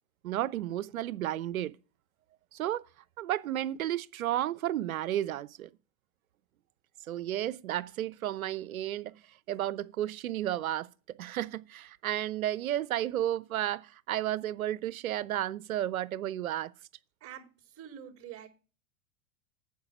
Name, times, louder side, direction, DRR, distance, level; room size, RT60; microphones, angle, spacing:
voice 1, 0.2-1.7 2.5-2.8 3.2-5.7 7.1-9.1 9.5-10.9 11.2-16.7, right 12 dB, 90° right, 0.8 m, -32 dB
voice 2, 17.2-18.5, right 9 dB, 35° right, 4.2 m, -46 dB
9.6 x 7.4 x 6.0 m
hypercardioid pair, 110°, 41 cm